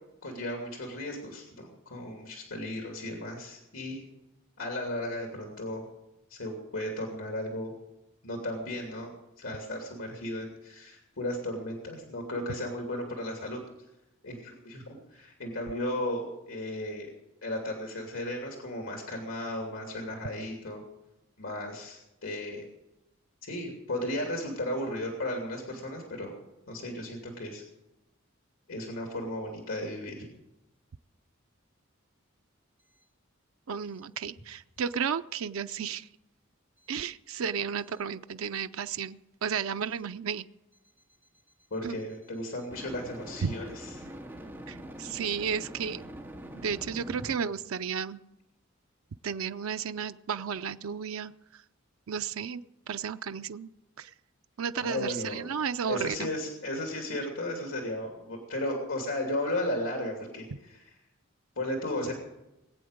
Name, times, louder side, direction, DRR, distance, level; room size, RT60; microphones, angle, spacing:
voice 1, 0.2-4.0 4.6-5.9 6.3-7.7 8.2-9.1 9.4-13.6 14.2-17.1 17.4-20.8 21.4-22.7 23.4-26.3 26.7-27.6 28.7-30.3 41.7-44.1 54.8-55.4 55.8-60.8 61.6-62.1, left 1 dB, 75° left, 1 dB, 2.9 m, -35 dB
voice 2, 33.7-36.1 36.9-40.4 41.8-42.0 43.4-43.5 44.7-46.0 46.6-48.2 49.2-51.6 52.1-52.6 52.9-53.7 54.0-54.1 54.6-56.3, right 7 dB, 85° right, 10 dB, 0.5 m, -33 dB
sound 1, 37.8-38.0 42.7-47.3, equal, 10° right, 2.1 m, -44 dB
21.0 x 8.6 x 6.6 m, 0.94 s
head